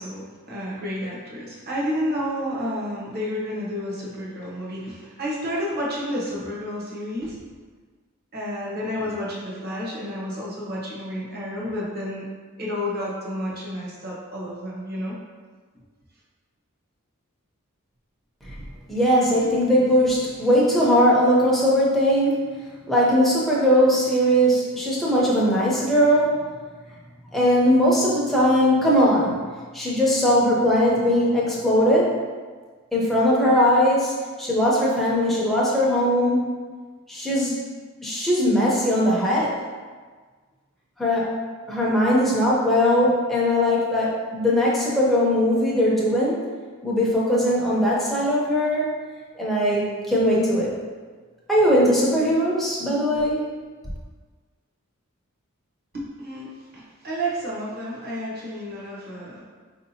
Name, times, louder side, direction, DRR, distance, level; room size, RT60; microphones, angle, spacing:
voice 1, 0.0-7.4 8.3-12.3 12.6-15.1 19.4-19.5 55.9-56.5 56.7-59.4, equal, 45° right, -5 dB, 0.9 m, -30 dB
voice 2, 18.9-22.5 22.9-26.3 27.3-29.4 29.7-32.1 32.9-34.1 34.4-36.5 37.1-37.6 38.0-39.6 41.0-41.3 41.7-46.4 46.8-48.9 49.4-50.7 51.5-53.4, equal, ahead, -6 dB, 0.7 m, -20 dB
4.6 x 2.7 x 2.8 m, 1.5 s
head